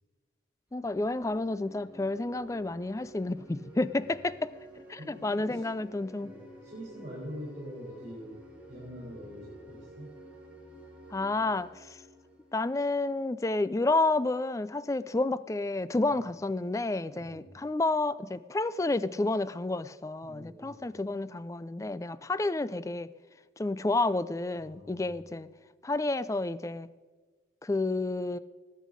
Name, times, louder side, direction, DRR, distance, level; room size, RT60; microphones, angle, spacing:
voice 1, 0.7-4.5 4.9-6.3 11.1-12.0 12.5-23.1 23.6-25.5 25.8-26.9 27.6-28.4, left 2 dB, 15° left, 16 dB, 0.3 m, -30 dB
sound 1, 0.7-13.4, equal, 10° right, 2.6 m, -52 dB
voice 2, 5.0-5.6 6.2-8.4 8.7-10.1 16.1-16.2 17.2-17.4 20.2-20.8 24.6-25.1, equal, 40° right, -5 dB, 4.0 m, -44 dB
19.5 x 8.4 x 5.1 m, 1.4 s
head